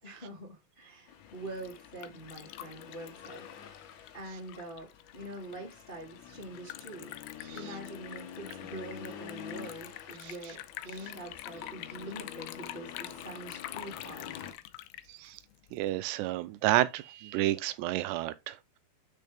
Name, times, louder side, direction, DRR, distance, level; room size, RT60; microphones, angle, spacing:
voice 1, 0.0-3.8 4.1-4.9 5.1-7.1 7.5-14.6, right 1 dB, 20° left, 1.8 m, -45 dB
Accelerating revving vroom, 1.1-14.5, left 8 dB, 65° left, 2.0 m, -48 dB
Liquid, 1.3-15.9, left 14 dB, 85° left, 2.2 m, -47 dB
voice 2, 15.1-15.4 15.7-18.8, right 15 dB, 90° right, 2.8 m, -30 dB
6.5 x 6.4 x 3.5 m
omnidirectional pair, 4.8 m